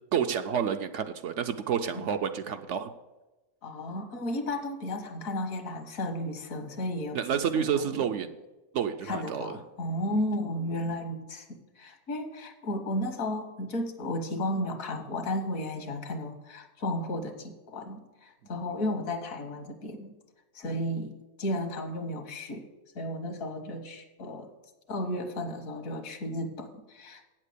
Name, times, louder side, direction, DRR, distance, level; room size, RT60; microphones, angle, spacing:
voice 1, 0.1-2.9 7.1-8.4 8.7-9.6, right 8 dB, 70° right, 8 dB, 0.8 m, -29 dB
voice 2, 3.6-7.2 7.5-8.1 9.0-20.1 20.5-22.7 22.9-24.5 24.9-27.3, left 1 dB, 70° left, 6 dB, 1.6 m, -34 dB
8.8 x 7.4 x 6.7 m, 1.1 s
omnidirectional pair, 1.5 m